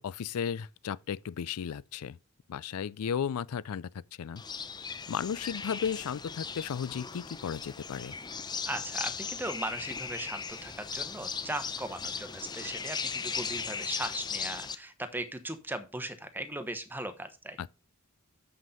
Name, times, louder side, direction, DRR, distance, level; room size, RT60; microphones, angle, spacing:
voice 1, 0.0-2.2 2.5-3.9 4.2-4.4 5.1-8.1, left 7 dB, 85° left, 0.4 m, -34 dB
sound 1, 4.4-14.8, left 5 dB, 20° left, 0.5 m, -38 dB
voice 2, 8.7-17.6, right 1 dB, 10° right, 1.0 m, -38 dB
7.2 x 6.2 x 5.6 m
head